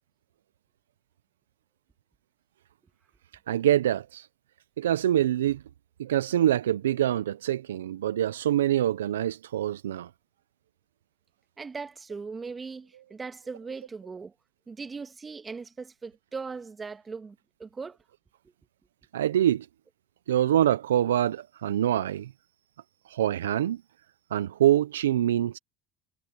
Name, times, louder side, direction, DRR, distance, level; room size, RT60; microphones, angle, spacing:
voice 1, 3.5-4.3 4.8-5.6 6.0-10.1 19.1-19.7 20.3-22.3 23.1-23.8 24.3-25.6, right 11 dB, 85° right, 0.7 m, -25 dB
voice 2, 11.6-14.3 14.7-18.0, right 4 dB, 20° right, 2.3 m, -39 dB
hypercardioid pair, 80°, 0 cm